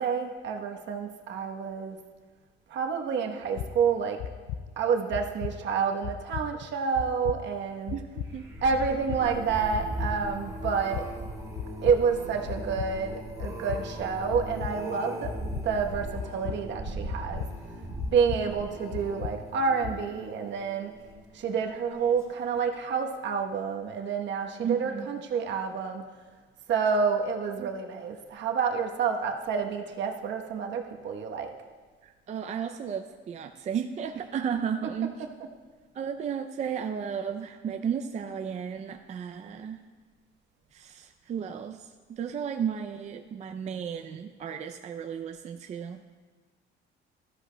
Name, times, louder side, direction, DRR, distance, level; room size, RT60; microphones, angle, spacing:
voice 1, 0.0-2.0 2.7-4.2 4.8-8.0 8.6-11.1 11.8-15.3 15.6-17.4 18.1-20.9 21.3-26.0 26.7-31.5 34.8-35.5, right 6 dB, 65° right, 3 dB, 1.0 m, -29 dB
sound 1, 3.4-3.7 4.2-4.6 5.1-5.5 6.0-6.4 6.9-7.4 7.9-8.3 8.8-9.2 9.7-10.1 10.6-11.0 11.5-12.0 12.5-12.9 13.4-13.8 14.3-14.7 15.2-15.6 16.1-16.6 17.1-17.5 18.0-18.4 18.9-19.3 19.8-19.9, left 9 dB, 85° left, 0.5 m, -34 dB
voice 2, 7.9-8.5 18.5-18.8 24.6-25.1 27.6-27.7 32.0-35.3 35.9-39.8 40.7-46.0, right 7 dB, 35° right, 6 dB, 0.4 m, -34 dB
sound 2, 8.1-21.5 22.0-22.3 22.6-22.7, right 1 dB, 15° right, 3.4 m, -39 dB
13.0 x 13.0 x 2.2 m, 1.4 s
cardioid pair, 135°, 20 cm